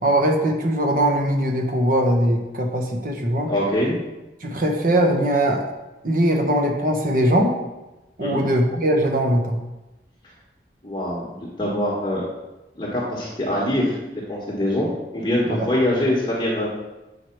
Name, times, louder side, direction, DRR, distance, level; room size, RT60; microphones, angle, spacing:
voice 1, 0.0-3.5 4.4-5.6 6.0-7.6 8.2-9.6 15.5-15.7, right 1 dB, 50° right, 2 dB, 1.1 m, -20 dB
voice 2, 3.5-3.9 8.2-8.4 10.8-12.2 12.7-14.0 14.3-16.7, left 1 dB, 25° left, -5 dB, 1.4 m, -23 dB
7.7 x 4.7 x 4.5 m, 1.0 s
head